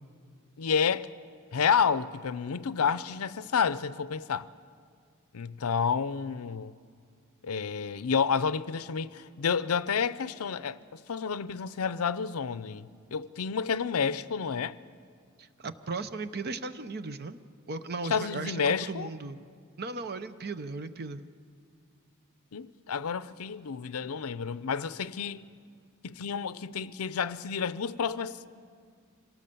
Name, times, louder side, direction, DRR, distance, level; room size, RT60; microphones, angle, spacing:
voice 1, 0.6-1.1 1.5-4.5 5.3-6.7 7.4-14.7 18.1-19.1 22.5-25.5 26.0-28.5, left 6 dB, 90° left, 0.6 m, -30 dB
voice 2, 15.4-17.4 17.7-19.4 19.8-21.2, right 3 dB, 50° right, 0.8 m, -36 dB
26.0 x 18.0 x 6.9 m
head